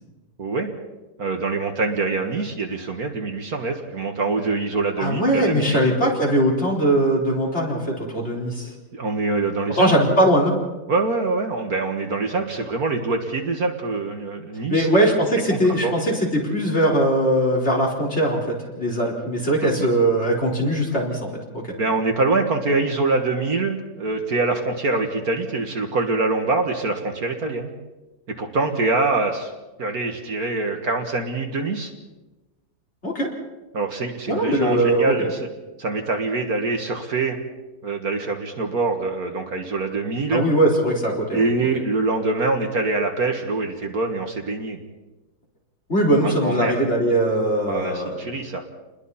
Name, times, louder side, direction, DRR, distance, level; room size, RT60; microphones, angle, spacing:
voice 1, 0.4-0.7 1.2-5.8 8.9-9.9 10.9-15.1 15.5-15.9 21.8-27.7 28.3-29.5 29.8-31.9 33.7-35.4 35.8-37.4 37.8-40.4 41.3-44.8 46.2-46.7 47.7-48.6, right 3 dB, 55° right, 3 dB, 2.0 m, -24 dB
voice 2, 5.0-8.7 9.8-10.6 14.7-21.3 21.5-21.6 33.0-33.3 34.3-35.3 40.3-41.4 45.9-48.3, right 1 dB, 35° left, -3 dB, 4.7 m, -20 dB
29.5 x 21.0 x 4.3 m, 1.1 s
omnidirectional pair, 2.0 m